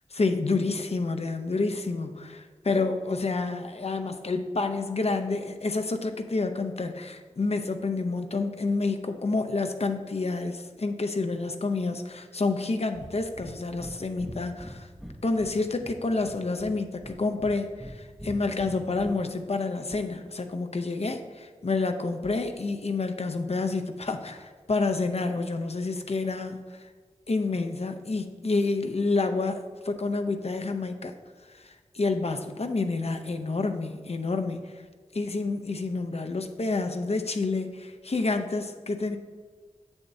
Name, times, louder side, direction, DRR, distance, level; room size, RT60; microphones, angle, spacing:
voice 1, 0.1-14.9 15.2-26.9 27.3-31.1 31.5-34.7 35.1-39.2, left 3 dB, 60° left, 7 dB, 0.6 m, -29 dB
Breathing, 12.9-13.1 13.4-13.5 13.8-13.9 14.2-15.6 15.8-16.7 17.0-17.9 18.2-19.1, equal, 5° right, 0.6 m, -42 dB
8.1 x 7.0 x 2.7 m, 1.5 s
wide cardioid pair, 60°, 12 cm